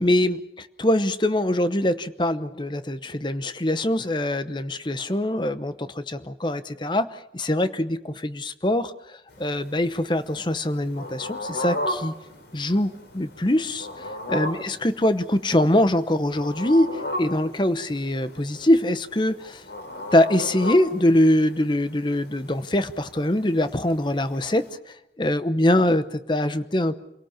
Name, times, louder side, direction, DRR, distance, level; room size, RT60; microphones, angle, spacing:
voice 1, 0.0-12.1 12.5-13.9 14.3-19.6 20.1-27.0, left 1 dB, 25° left, 12 dB, 0.9 m, -23 dB
sound 1, 9.3-24.7, left 1 dB, 80° left, 3.8 m, -36 dB
27.5 x 18.0 x 7.3 m, 0.84 s
head